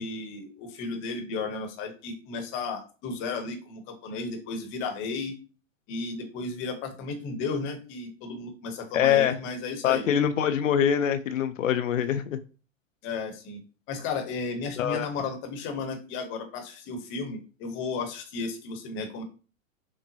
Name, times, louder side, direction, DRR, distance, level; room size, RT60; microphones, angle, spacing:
voice 1, 0.0-5.3 5.9-10.1 13.0-13.6 13.9-19.2, left 4 dB, 30° left, 0.9 m, -34 dB
voice 2, 8.9-9.4 9.8-12.4 14.8-15.1, left 9 dB, 70° left, 0.6 m, -24 dB
6.1 x 2.2 x 2.7 m
figure-of-eight pair, 105°, 40 cm